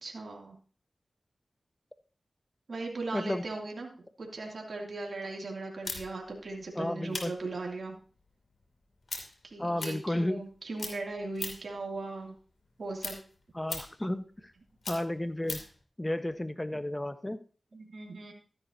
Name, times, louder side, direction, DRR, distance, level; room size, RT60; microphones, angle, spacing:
voice 1, 0.0-0.6 2.7-8.0 9.4-12.4 12.8-13.2 17.7-18.3, right 3 dB, 70° right, -1 dB, 2.6 m, -38 dB
voice 2, 3.1-3.4 6.8-7.3 9.6-10.4 13.5-14.2 14.9-15.6 16.0-17.4, left 1 dB, 20° left, 10 dB, 1.1 m, -32 dB
sound 1, 5.8-10.5 10.8-11.8 12.2-15.8, left 3 dB, 70° left, 2.6 m, -41 dB
13.5 x 10.5 x 2.8 m, 0.38 s
cardioid pair, 40°, 0 cm